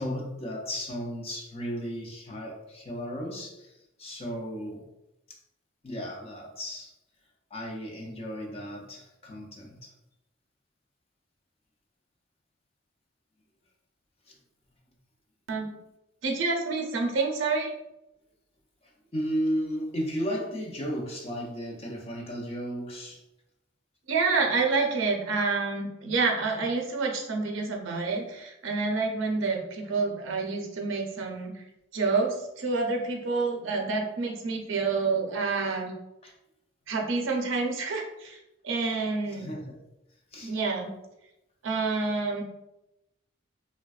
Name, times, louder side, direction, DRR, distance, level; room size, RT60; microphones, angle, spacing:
voice 1, 0.0-4.9 5.3-5.4 5.8-6.9 7.5-9.9 19.1-23.2 36.2-36.3 39.3-39.8 40.3-40.5, equal, 30° left, -1 dB, 0.5 m, -34 dB
voice 2, 16.2-17.7 24.1-31.6 31.9-35.9 36.9-38.4 38.6-39.5 40.4-40.9 41.6-42.4, right 4 dB, 75° right, 1 dB, 0.5 m, -28 dB
3.3 x 2.2 x 2.3 m, 0.90 s
head